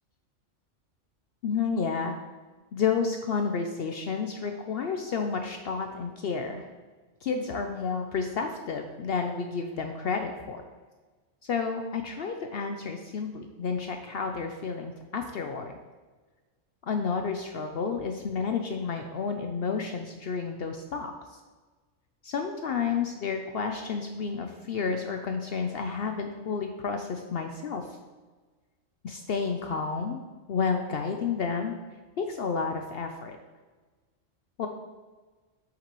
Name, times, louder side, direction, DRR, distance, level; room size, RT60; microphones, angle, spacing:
voice 1, 1.4-2.1 2.7-6.7 7.2-10.6 11.4-15.7 16.9-21.1 22.2-27.9 29.0-30.2 30.5-31.8 32.2-33.4 34.6-34.7, left 5 dB, 60° left, 5 dB, 0.7 m, -31 dB
7.6 x 6.9 x 3.0 m, 1.3 s
omnidirectional pair, 1.3 m